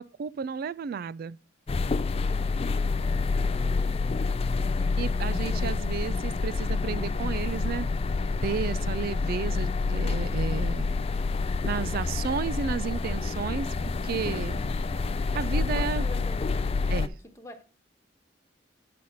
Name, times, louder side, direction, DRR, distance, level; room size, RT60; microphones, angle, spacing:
voice 1, 0.0-1.4 5.0-7.9 8.4-10.9 11.6-14.6 15.3-16.1 16.9-17.1, right 6 dB, 50° right, 0.3 m, -32 dB
sound 1, 1.7-17.1, left 4 dB, 30° left, 0.3 m, -28 dB
voice 2, 2.0-4.2 5.1-5.8 15.2-17.6, left 1 dB, 15° left, 1.2 m, -48 dB
9.2 x 4.2 x 6.3 m
head